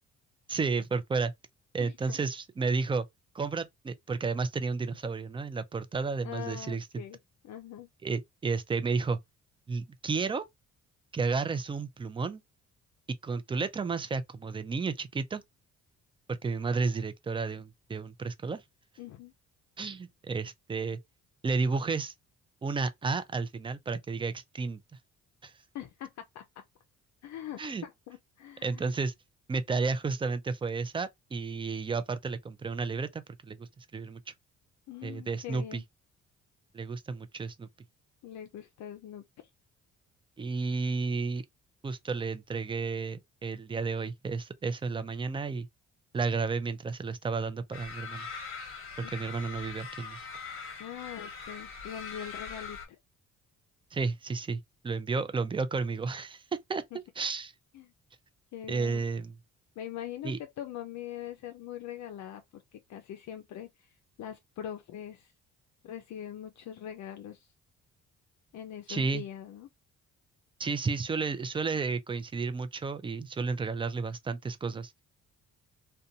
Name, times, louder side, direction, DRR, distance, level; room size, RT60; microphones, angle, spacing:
voice 1, 0.5-1.3 1.7-3.1 3.3-7.0 8.0-9.2 9.7-10.5 11.1-12.4 13.2-15.4 16.3-18.6 19.8-21.0 21.4-22.1 22.6-24.8 25.4-25.5 27.6-27.9 28.6-29.1 29.5-34.3 35.0-35.8 36.7-37.7 40.4-41.4 41.8-45.7 46.1-48.3 49.0-50.3 53.9-56.4 56.7-56.8 57.2-57.5 58.7-59.4 60.2-60.4 68.9-69.2 70.6-74.9, right 4 dB, 15° right, 0.4 m, -32 dB
voice 2, 1.8-2.2 6.2-7.2 7.4-7.9 19.0-19.3 25.7-26.4 27.2-29.0 34.9-35.8 38.2-39.2 49.0-49.1 50.8-53.0 56.9-57.0 57.7-57.9 58.5-59.0 59.8-65.3 65.8-67.5 68.5-69.7, left 10 dB, 65° left, 0.5 m, -42 dB
sound 1, 47.7-52.9, left 5 dB, 45° left, 1.1 m, -42 dB
2.5 x 2.2 x 2.7 m
cardioid pair, 90°, 30 cm